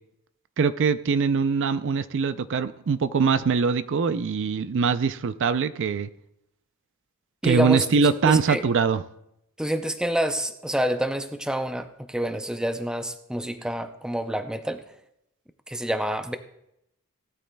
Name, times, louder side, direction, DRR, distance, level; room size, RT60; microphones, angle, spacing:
voice 1, 0.6-6.1 7.4-9.0, right 5 dB, 55° right, 13 dB, 0.4 m, -23 dB
voice 2, 7.4-7.9 8.3-8.6 9.6-14.8 15.7-16.4, right 1 dB, 5° right, 8 dB, 0.5 m, -27 dB
18.0 x 12.5 x 2.3 m, 0.81 s
head